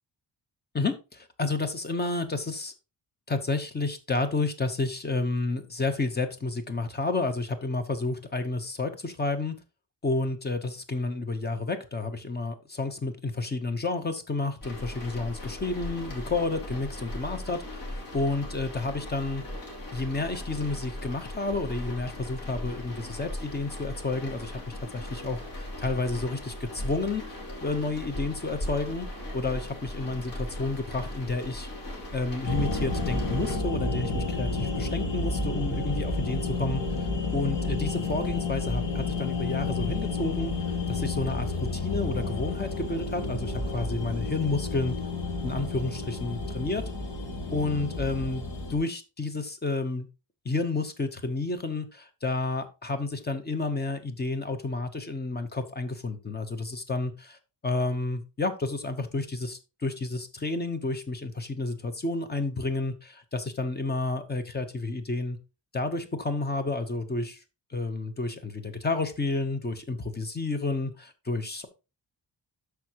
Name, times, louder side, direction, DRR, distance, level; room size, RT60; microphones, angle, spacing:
voice 1, 0.7-2.7 3.3-9.6 10.0-19.4 19.9-29.1 29.3-31.7 32.1-40.5 40.9-44.9 45.4-46.8 47.5-48.4 48.7-50.1 50.4-57.4 57.6-65.4 65.7-67.4 67.7-71.7, left 3 dB, 25° left, 9 dB, 0.9 m, -30 dB
sound 1, 14.6-33.5, left 1 dB, 50° left, 2.9 m, -38 dB
sound 2, 32.4-48.8, left 3 dB, 80° left, 2.2 m, -31 dB
13.0 x 4.8 x 3.0 m, 0.28 s
wide cardioid pair, 170°, 42 cm